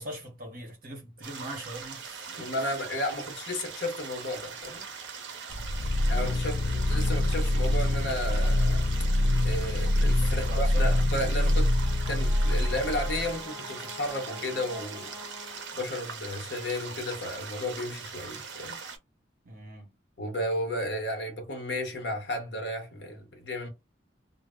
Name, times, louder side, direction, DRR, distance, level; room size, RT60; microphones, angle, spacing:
voice 1, 0.0-2.8 5.5-6.1 10.2-11.0 19.4-19.9, equal, 45° right, 0.9 m, -42 dB
sound 1, 1.2-19.0, right 6 dB, 65° right, 0.5 m, -41 dB
voice 2, 2.3-4.8 6.1-8.9 9.4-11.7 12.1-15.1 15.7-18.8 20.2-23.7, left 1 dB, 60° left, 0.8 m, -33 dB
sound 2, 5.5-13.4, left 1 dB, 85° left, 0.5 m, -25 dB
Brass instrument, 11.0-16.1, left 4 dB, 10° right, 0.4 m, -47 dB
2.0 x 2.0 x 3.5 m
head